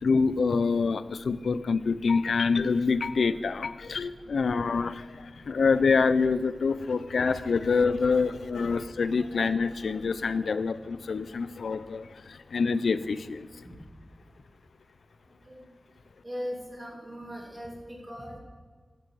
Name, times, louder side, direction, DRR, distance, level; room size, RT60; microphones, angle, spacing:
voice 1, 0.0-13.6, left 4 dB, 85° left, 14 dB, 0.5 m, -26 dB
voice 2, 16.2-18.4, equal, 20° right, -1 dB, 2.4 m, -39 dB
14.0 x 6.9 x 4.7 m, 1.5 s
wide cardioid pair, 110°, 0 cm